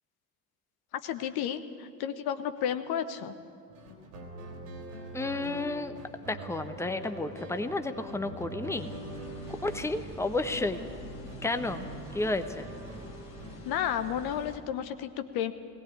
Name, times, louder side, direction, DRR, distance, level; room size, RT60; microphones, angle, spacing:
voice 1, 1.0-3.3 13.6-15.5, left 9 dB, 50° left, 9 dB, 1.1 m, -32 dB
sound 1, 3.7-13.6, right 1 dB, 75° right, 3.8 m, -43 dB
voice 2, 5.1-6.0 6.2-8.9 9.6-10.9 11.4-11.9 12.1-12.7, left 2 dB, 5° left, 8 dB, 1.2 m, -31 dB
sound 2, 8.8-14.6, equal, 80° left, 2.2 m, -46 dB
20.0 x 18.5 x 8.4 m, 2.2 s
figure-of-eight pair, 50°, 47 cm